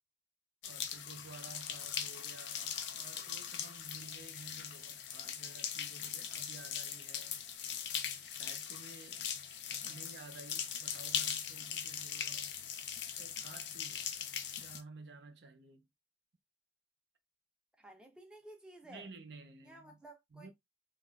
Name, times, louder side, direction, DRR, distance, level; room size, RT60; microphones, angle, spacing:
sound 1, 0.6-14.8, left 8 dB, 90° left, 0.4 m, -40 dB
voice 1, 0.6-7.5 8.3-9.3 9.8-12.5 13.1-14.1 14.6-15.9 18.9-20.0 20.3-20.5, right 3 dB, 70° right, 0.6 m, -53 dB
voice 2, 17.8-19.1 19.6-20.5, right 1 dB, 5° right, 0.5 m, -54 dB
3.0 x 2.3 x 2.2 m
head